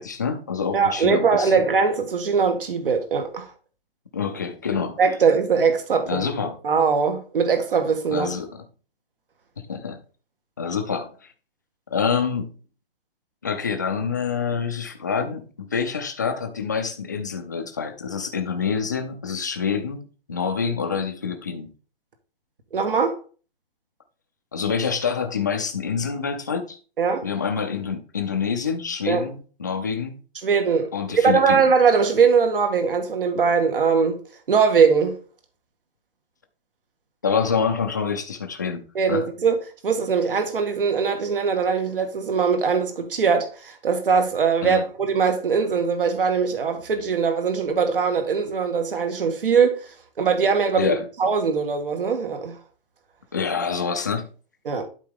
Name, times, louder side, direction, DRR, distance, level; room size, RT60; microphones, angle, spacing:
voice 1, 0.0-1.6 4.1-5.0 6.1-6.6 8.1-8.6 9.7-10.0 10.6-11.1 11.9-12.5 13.4-20.0 20.3-21.7 24.5-26.8 27.2-30.1 30.9-31.6 37.2-38.8 39.1-39.3 44.6-44.8 50.8-51.0 53.3-54.3, left 6 dB, 20° left, 0.5 m, -26 dB
voice 2, 0.7-3.5 5.0-6.3 6.6-8.3 22.7-23.2 27.0-27.2 29.1-29.2 30.4-30.9 31.2-34.2 34.5-35.2 38.9-39.6 39.8-49.8 50.2-52.6 54.6-54.8, right 5 dB, 65° right, 1.6 m, -21 dB
12.0 x 4.0 x 3.6 m
hypercardioid pair, 175°, 29 cm